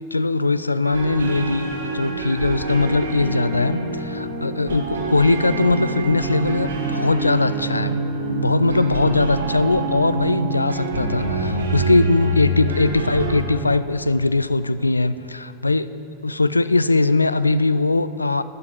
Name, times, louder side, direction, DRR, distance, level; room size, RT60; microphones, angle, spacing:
voice 1, 0.1-8.0 8.3-15.9 16.2-18.4, left 3 dB, 80° left, 14 dB, 0.3 m, -20 dB
sound 1, 0.8-13.4, right 2 dB, 65° right, 1.6 m, -26 dB
11.0 x 7.6 x 9.0 m, 2.8 s
figure-of-eight pair, 90°, 0 cm